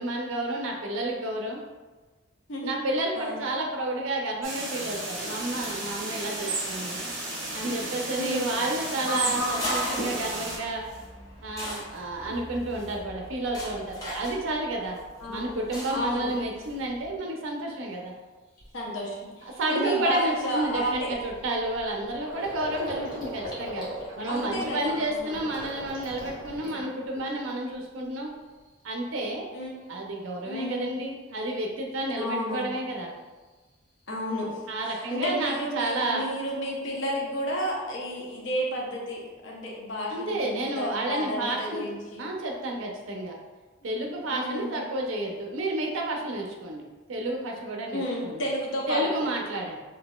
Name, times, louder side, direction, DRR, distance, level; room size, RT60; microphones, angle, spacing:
voice 1, 0.0-1.6 2.6-7.0 7.5-10.8 11.4-15.0 15.3-18.1 19.4-23.9 24.2-28.3 28.8-29.5 29.9-33.1 34.7-36.2 40.1-41.9 42.2-43.4 43.8-46.8 47.1-48.4 48.9-49.8, right 2 dB, 85° right, 0 dB, 0.6 m, -30 dB
sound 1, 4.4-10.6, right 1 dB, 60° right, 1.4 m, -32 dB
voice 2, 8.1-8.6 9.2-9.4 15.2-15.5 15.9-16.3 18.7-21.1 24.3-25.3 29.5-30.0 30.4-30.9 32.2-32.8 34.1-34.6 34.8-42.3 44.3-44.8 47.9-49.3, equal, 70° left, -3 dB, 0.8 m, -32 dB
sound 2, 9.2-17.2, equal, 20° left, 0.8 m, -40 dB
Gurgling, 18.0-18.1 18.6-18.8 19.2-19.4 19.6-27.7 28.0-28.7, equal, 45° left, 1.2 m, -40 dB
3.9 x 2.8 x 2.3 m, 1.3 s
head